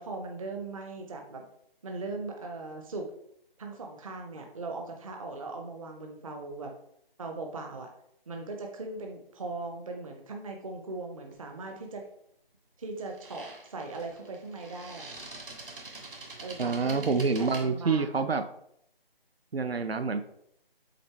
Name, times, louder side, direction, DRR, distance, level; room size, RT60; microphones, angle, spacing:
voice 1, 0.0-1.4 1.8-3.1 3.6-6.7 7.2-7.9 8.3-12.0 12.8-15.1 16.4-18.2, right 3 dB, 35° right, 3 dB, 0.7 m, -39 dB
sound 1, 11.3-11.5 13.0-17.6, right 3 dB, 60° right, 1.8 m, -45 dB
voice 2, 16.6-18.4 19.5-20.3, right 4 dB, 80° right, 9 dB, 0.6 m, -27 dB
7.7 x 4.2 x 3.3 m, 0.72 s
figure-of-eight pair, 150°, 30 cm